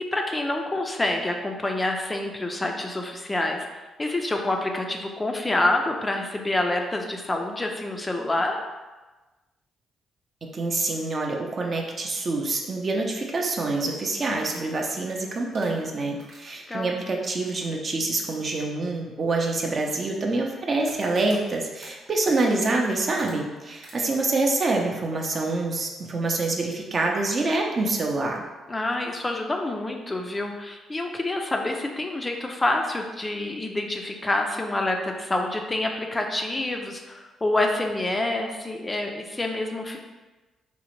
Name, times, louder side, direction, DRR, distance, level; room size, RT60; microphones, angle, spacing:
voice 1, 0.1-8.6 16.7-16.9 28.7-40.0, left 2 dB, 20° left, 2 dB, 0.3 m, -27 dB
voice 2, 10.4-28.4, right 2 dB, 40° right, 1 dB, 0.5 m, -26 dB
sound 1, 14.3-16.7 17.2-17.7 17.9-18.0 18.5-18.6 19.3-20.1 20.8-23.3 23.8-24.0, right 2 dB, 85° right, 1.0 m, -48 dB
3.8 x 2.1 x 3.0 m, 1.2 s
cardioid pair, 90°, 0 cm